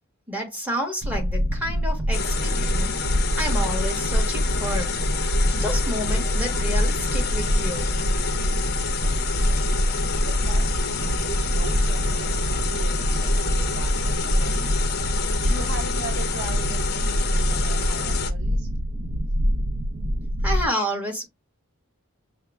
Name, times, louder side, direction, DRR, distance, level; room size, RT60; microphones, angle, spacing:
voice 1, 0.3-3.0 3.4-4.9 5.5-7.9 20.4-21.3, equal, 5° right, 1.2 m, -30 dB
sound 1, 1.0-20.7, equal, 50° right, 0.5 m, -25 dB
sound 2, 2.1-18.3, left 5 dB, 45° left, 0.6 m, -29 dB
voice 2, 10.2-18.7, right 3 dB, 65° right, 0.8 m, -40 dB
sound 3, 11.5-14.4 14.7-14.8, left 1 dB, 30° right, 3.1 m, -46 dB
5.6 x 2.1 x 3.3 m
head